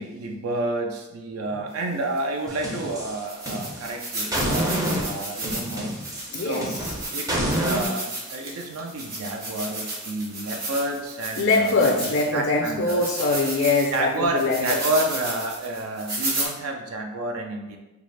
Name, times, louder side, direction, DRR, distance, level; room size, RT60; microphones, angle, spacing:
voice 1, 0.0-6.2 6.4-6.7 7.1-11.8 12.3-13.0 13.9-17.8, right 2 dB, 70° right, 2 dB, 0.4 m, -30 dB
sound 1, 2.2-2.3 2.8-2.9 3.3-12.4 12.9-16.5, right 2 dB, 45° right, 0.9 m, -33 dB
sound 2, 2.5-3.9 4.3-7.9, equal, 15° right, 0.5 m, -28 dB
voice 2, 6.3-6.8 11.4-14.8, left 3 dB, 50° left, -1 dB, 0.4 m, -23 dB
3.5 x 2.4 x 3.2 m, 1.1 s
head